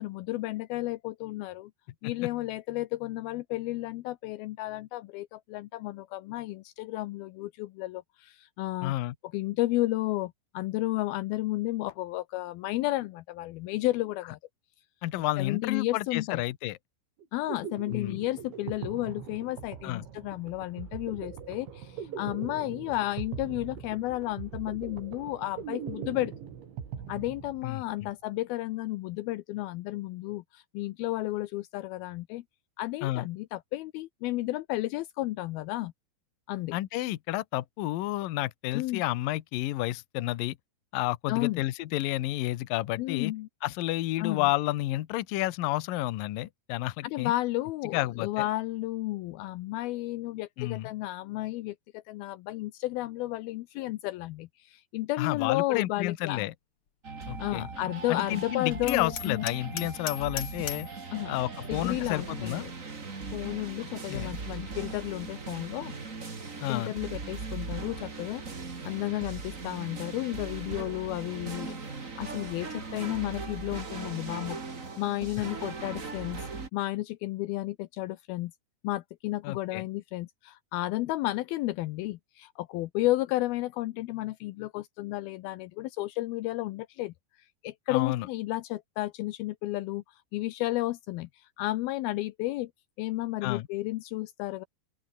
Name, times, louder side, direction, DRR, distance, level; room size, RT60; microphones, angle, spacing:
voice 1, 0.0-1.7 2.0-8.9 9.3-14.4 15.4-16.4 17.3-26.3 27.1-32.4 32.8-35.9 36.5-36.8 38.7-39.0 41.3-41.6 43.0-43.5 44.2-44.5 47.0-56.4 57.4-59.5 61.1-61.3 61.7-62.7 63.3-65.9 66.7-68.4 68.8-74.6 75.0-76.4 76.7-78.5 78.8-87.1 87.6-90.0 90.3-92.7 93.0-94.6, left 17 dB, 90° left, 2.1 m, -32 dB
voice 2, 8.8-9.2 15.0-16.8 17.9-18.2 19.8-20.1 27.6-28.1 33.0-33.3 36.7-40.6 40.9-43.3 43.6-47.3 47.9-48.5 50.6-50.9 55.2-56.5 57.3-57.7 58.1-60.9 61.3-62.7 64.1-64.4 66.6-66.9 79.4-79.9 87.9-88.3 93.4-93.7, left 16 dB, 70° left, 2.2 m, -31 dB
sound 1, 17.2-28.0, right 8 dB, 75° right, 5.9 m, -41 dB
sound 2, 57.0-76.7, right 4 dB, 25° right, 1.7 m, -39 dB
Hammer, 58.9-61.0, left 6 dB, 35° left, 2.7 m, -38 dB
open air
omnidirectional pair, 5.3 m